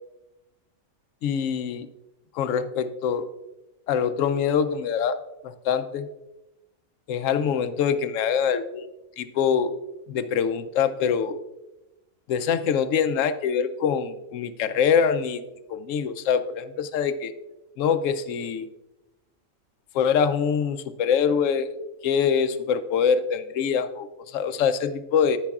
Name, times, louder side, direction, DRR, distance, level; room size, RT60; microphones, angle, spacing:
voice 1, 1.2-1.9 2.4-3.3 3.9-5.2 5.4-6.1 7.1-8.9 9.2-9.7 10.1-11.4 12.3-15.4 15.7-17.3 17.8-18.7 19.9-21.7 22.0-24.1 24.3-25.4, left 7 dB, 75° left, 11 dB, 0.9 m, -24 dB
9.9 x 9.5 x 2.4 m, 0.98 s
omnidirectional pair, 1.4 m